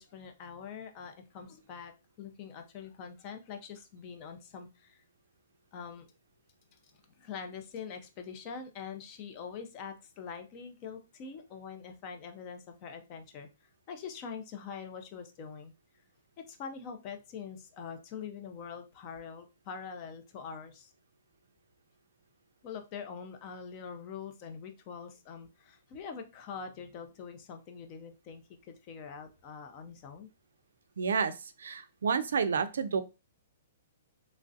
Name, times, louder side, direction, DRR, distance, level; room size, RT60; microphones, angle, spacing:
voice 1, 0.0-5.0 5.7-6.1 7.1-15.7 16.4-20.9 22.6-30.3, left 6 dB, 30° left, 6 dB, 0.5 m, -44 dB
voice 2, 31.0-33.0, right 6 dB, 85° right, 11 dB, 0.4 m, -30 dB
3.1 x 2.4 x 2.6 m, 0.28 s
hypercardioid pair, 165°, 0 cm